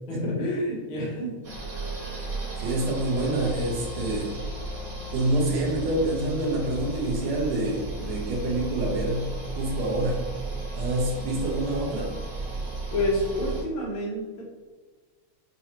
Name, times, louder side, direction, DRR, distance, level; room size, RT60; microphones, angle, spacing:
voice 1, 0.1-1.3 12.9-14.4, left 1 dB, 60° left, -4 dB, 1.5 m, -28 dB
sound 1, 1.4-13.6, right 2 dB, 45° right, 1.7 m, -34 dB
voice 2, 2.6-4.3 5.1-9.3 9.6-10.3 10.7-12.1, right 1 dB, 65° right, -2 dB, 1.4 m, -27 dB
6.2 x 2.7 x 2.9 m, 1.3 s
omnidirectional pair, 3.4 m